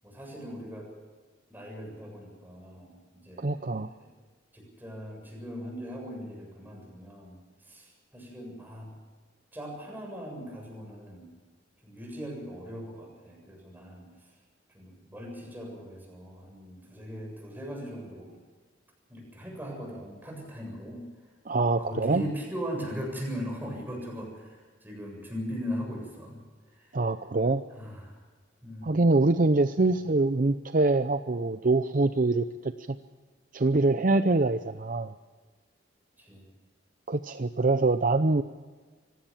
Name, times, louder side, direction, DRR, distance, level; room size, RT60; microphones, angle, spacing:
voice 1, 0.0-0.9 1.5-4.1 4.5-8.9 9.5-11.3 11.8-14.3 14.7-18.4 19.1-21.0 21.8-26.4 26.7-27.0 27.7-28.2 28.6-29.0 36.2-36.5, equal, 10° right, 0 dB, 7.5 m, -39 dB
voice 2, 3.4-3.9 21.5-22.2 26.9-27.6 28.8-33.0 33.5-35.1 37.1-38.4, right 2 dB, 45° right, 10 dB, 0.6 m, -24 dB
25.0 x 16.5 x 7.3 m, 1.4 s
head